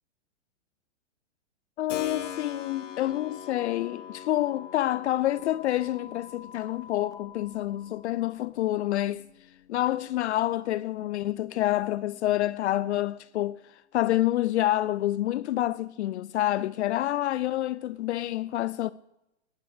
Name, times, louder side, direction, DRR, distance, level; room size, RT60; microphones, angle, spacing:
voice 1, 1.8-9.3 9.7-18.9, left 14 dB, 65° left, 0.5 m, -28 dB
Keyboard (musical), 1.9-10.5, left 9 dB, 85° left, 1.5 m, -44 dB
sound 1, 2.2-8.6, left 7 dB, 10° left, 0.8 m, -48 dB
19.5 x 9.5 x 4.9 m
hypercardioid pair, 135°, 36 cm